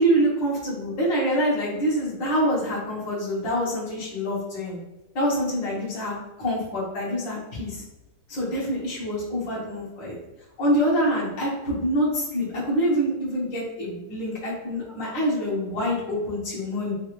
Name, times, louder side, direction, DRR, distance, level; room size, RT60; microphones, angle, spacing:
voice 1, 0.0-4.8 5.2-7.8 8.3-10.2 10.6-16.9, equal, 80° left, -5 dB, 2.3 m, -26 dB
5.8 x 2.6 x 3.1 m, 1.0 s
omnidirectional pair, 2.0 m